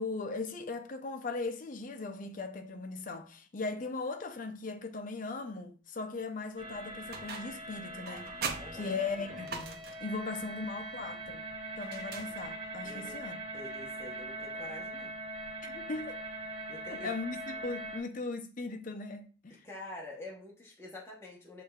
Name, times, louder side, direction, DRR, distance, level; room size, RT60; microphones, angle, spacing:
voice 1, 0.0-8.3 8.7-11.4 11.8-13.4 15.6-16.2 16.9-19.6, left 3 dB, 40° left, 0.5 m, -38 dB
sound 1, 6.6-18.0, right 2 dB, 80° right, 1.2 m, -42 dB
sound 2, 7.1-7.7 8.0-10.1 11.8-12.8, right 5 dB, 50° right, 0.5 m, -41 dB
voice 2, 8.6-8.9 12.8-13.2 13.5-15.1 16.7-17.1 19.6-21.6, left 2 dB, 15° left, 0.9 m, -46 dB
6.4 x 3.2 x 2.3 m
head